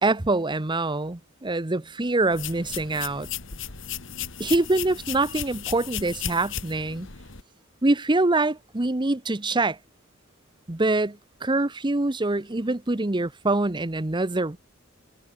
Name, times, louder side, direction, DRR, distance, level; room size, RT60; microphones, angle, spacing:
voice 1, 0.0-3.3 4.4-7.1 7.8-9.8 10.7-14.6, right 2 dB, 25° right, 0.9 m, -25 dB
sound 1, 2.3-7.4, left 9 dB, 65° left, 2.1 m, -35 dB
head